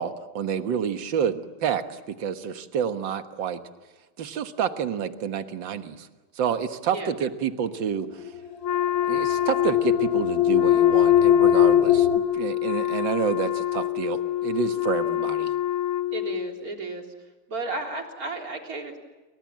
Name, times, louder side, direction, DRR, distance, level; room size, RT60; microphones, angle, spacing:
voice 1, 0.0-3.6 4.2-6.1 6.4-8.2 9.1-15.5, right 7 dB, 60° right, 8 dB, 2.1 m, -29 dB
sound 1, 8.3-12.2, left 11 dB, 40° left, 2.5 m, -20 dB
Wind instrument woodwind instrument, 8.6-16.6, left 12 dB, 70° left, 2.0 m, -27 dB
voice 2, 16.1-17.1 17.5-19.0, right 3 dB, 40° right, 2 dB, 4.1 m, -33 dB
30.0 x 24.5 x 7.6 m, 1.2 s
omnidirectional pair, 2.4 m